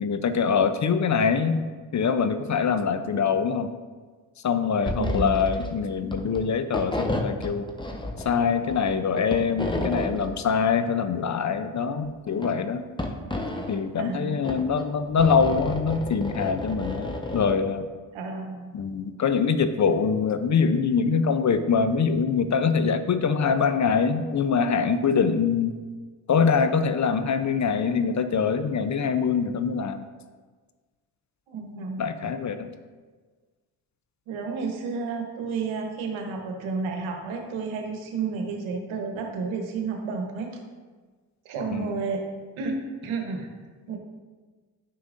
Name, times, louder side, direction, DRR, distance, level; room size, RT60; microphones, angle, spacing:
voice 1, 0.0-1.7 1.9-3.7 4.4-7.7 8.2-12.8 13.7-17.9 18.7-25.7 26.3-30.0 32.0-32.7 41.7-41.9, left 6 dB, 40° left, 10 dB, 0.6 m, -24 dB
sound 1, 4.8-5.7 6.0-6.4 6.7-8.4 8.7-10.3 12.1-12.5 13.0-13.8 14.4-17.5, left 1 dB, 10° left, 0.9 m, -31 dB
voice 2, 5.0-5.4 14.0-14.5 18.1-18.7 31.5-32.1 34.3-40.6 41.4-42.2 42.6-42.8 43.0-43.5 43.9-44.0, right 4 dB, 80° right, 2 dB, 1.1 m, -31 dB
9.5 x 5.8 x 2.5 m, 1.4 s
hypercardioid pair, 45°, 47 cm